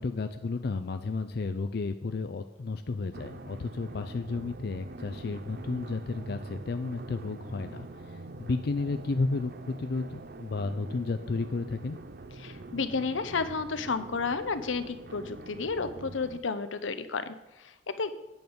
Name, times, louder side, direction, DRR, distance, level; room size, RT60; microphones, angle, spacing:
voice 1, 0.0-12.0, left 3 dB, 55° left, 8 dB, 0.4 m, -32 dB
sound 1, 3.1-16.4, right 2 dB, 50° right, 0.5 m, -44 dB
voice 2, 12.4-18.1, left 4 dB, 80° left, 11 dB, 0.8 m, -32 dB
9.2 x 5.3 x 7.8 m, 1.0 s
head